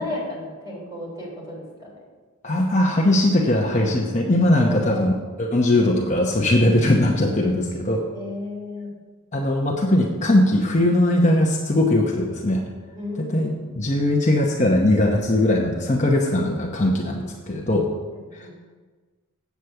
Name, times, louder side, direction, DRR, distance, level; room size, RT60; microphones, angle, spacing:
voice 1, 0.0-1.9 4.6-5.4 8.1-8.9 13.0-13.8 18.4-18.5, left 1 dB, 15° right, -5 dB, 3.6 m, -34 dB
voice 2, 2.4-5.1 5.4-8.0 9.3-12.6 13.2-13.5 13.8-17.9 18.3-18.5, left 1 dB, 35° left, -1 dB, 0.9 m, -20 dB
8.3 x 7.8 x 5.8 m, 1.4 s
head